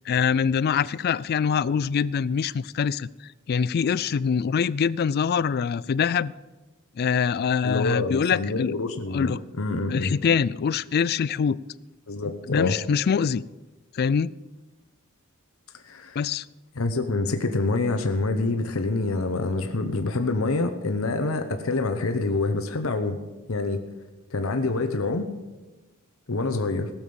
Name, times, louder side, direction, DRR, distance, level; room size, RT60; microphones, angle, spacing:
voice 1, 0.1-3.1 3.5-6.3 7.0-8.7 9.1-9.4 9.9-11.6 12.5-13.4 13.9-14.3 16.2-16.4, left 6 dB, 45° left, 20 dB, 0.3 m, -24 dB
voice 2, 7.6-10.1 12.1-12.8 15.9-16.2 16.8-23.2 23.5-23.8 24.3-25.3 26.3-26.9, left 3 dB, 75° left, 7 dB, 0.9 m, -26 dB
17.0 x 7.2 x 7.0 m, 1.1 s
head